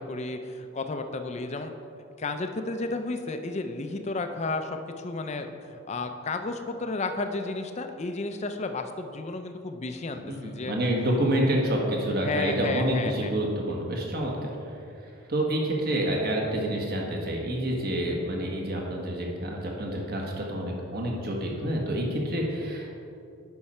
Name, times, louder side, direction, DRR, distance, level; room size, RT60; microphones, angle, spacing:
voice 1, 0.0-1.7 2.2-10.8 12.2-13.3, left 3 dB, 30° left, 7 dB, 0.5 m, -32 dB
voice 2, 10.1-22.9, right 1 dB, 45° right, -1 dB, 1.4 m, -28 dB
10.5 x 5.6 x 4.3 m, 2.6 s
head